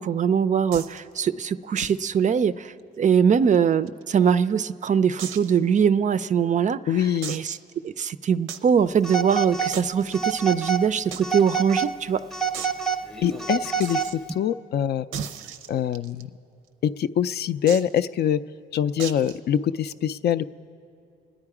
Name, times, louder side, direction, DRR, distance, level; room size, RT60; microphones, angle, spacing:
voice 1, 0.0-6.8 7.3-7.6 7.8-12.2, right 7 dB, 40° right, 14 dB, 0.4 m, -22 dB
sound 1, 0.7-1.0 1.8-2.0 2.3-2.4 2.8-2.9 3.5-4.3 5.2-5.6 6.1-6.2 7.2-7.7 8.5-8.7 9.7-10.2 11.1-11.2 11.5-11.6 11.9-12.0 12.5-12.8 13.8-14.2 15.1-16.2 17.7-18.0 19.0-19.4, right 8 dB, 90° right, 0.6 m, -36 dB
voice 2, 6.9-7.4 13.2-14.0 14.3-15.1 15.7-16.3 16.8-18.4 18.7-20.4, left 9 dB, 55° left, 14 dB, 0.4 m, -24 dB
Telephone, 9.0-9.8 10.1-10.9 11.2-11.9 12.3-14.3, right 6 dB, ahead, 0.7 m, -27 dB
26.0 x 9.9 x 4.8 m, 2.6 s
cardioid pair, 90°, 20 cm